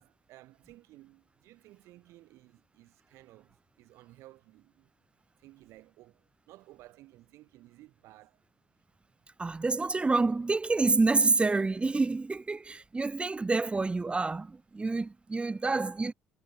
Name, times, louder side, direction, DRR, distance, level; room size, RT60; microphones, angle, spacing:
voice 1, 0.0-4.9 5.4-8.4 13.1-13.3, right 17 dB, 70° right, 7.3 m, -56 dB
voice 2, 9.4-16.1, right 3 dB, 20° right, 1.7 m, -28 dB
hypercardioid pair, 65°, 5 cm